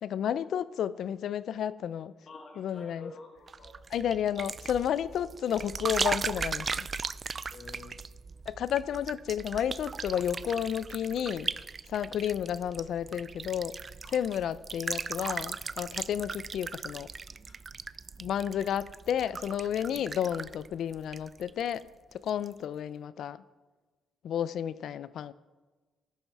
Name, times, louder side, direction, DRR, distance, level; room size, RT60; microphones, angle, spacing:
voice 1, 0.0-2.1 2.6-3.1 3.9-6.9 8.5-11.5 11.9-13.7 14.1-17.1 18.2-23.4 24.2-25.3, left 9 dB, 70° left, 17 dB, 0.4 m, -32 dB
voice 2, 2.3-3.7 7.5-8.0 14.0-14.1 17.5-17.6, left 3 dB, 50° left, 0 dB, 1.9 m, -48 dB
sound 1, 3.5-21.8 22.1-22.5, right 5 dB, 35° right, 0.3 m, -38 dB
14.0 x 7.4 x 4.7 m, 1.3 s
cardioid pair, 90°, 0 cm